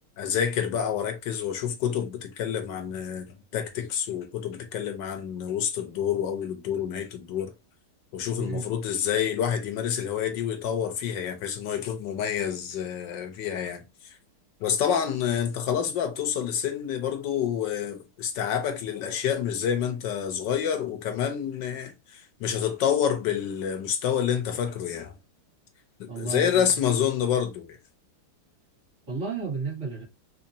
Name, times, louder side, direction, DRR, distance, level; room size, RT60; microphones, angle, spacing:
voice 1, 0.2-3.3 3.5-7.5 8.1-14.2 14.6-25.2 26.0-27.8, left 8 dB, 65° left, 1.3 m, -28 dB
voice 2, 8.4-8.7 26.1-26.8 29.1-30.0, right 4 dB, 40° right, 1.9 m, -32 dB
4.0 x 2.8 x 2.7 m
omnidirectional pair, 2.4 m